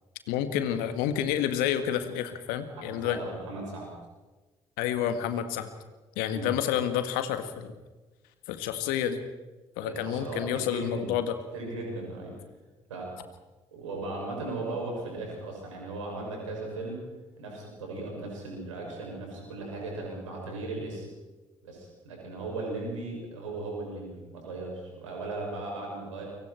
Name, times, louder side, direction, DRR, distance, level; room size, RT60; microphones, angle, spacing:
voice 1, 0.3-3.2 4.8-5.7 6.2-7.7 8.5-9.2 9.8-11.3, left 10 dB, 70° left, 10 dB, 1.9 m, -29 dB
voice 2, 2.7-3.9 6.3-6.5 9.8-11.1 11.5-12.3 12.9-13.1 13.7-17.0 17.4-21.1 21.6-26.2, right 2 dB, 85° right, -1 dB, 6.7 m, -37 dB
28.5 x 24.0 x 4.5 m, 1.2 s
figure-of-eight pair, 45°, 16 cm